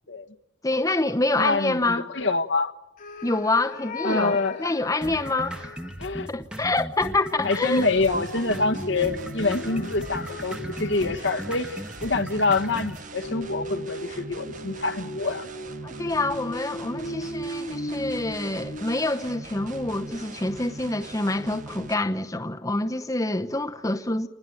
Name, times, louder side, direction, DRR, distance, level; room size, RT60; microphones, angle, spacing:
voice 1, 0.6-2.1 3.2-5.8 6.3-7.9 15.8-24.3, left 2 dB, 15° left, 0.9 m, -26 dB
voice 2, 1.4-2.7 4.0-4.7 6.0-6.3 7.4-15.5, left 3 dB, 65° left, 1.4 m, -26 dB
sound 1, 3.0-6.0 7.0-11.8 13.2-19.3, left 1 dB, 45° left, 1.6 m, -38 dB
sound 2, 5.0-13.0, right 1 dB, 5° right, 1.3 m, -37 dB
sound 3, 7.6-21.9, right 2 dB, 45° right, 1.3 m, -41 dB
29.0 x 20.5 x 9.2 m
head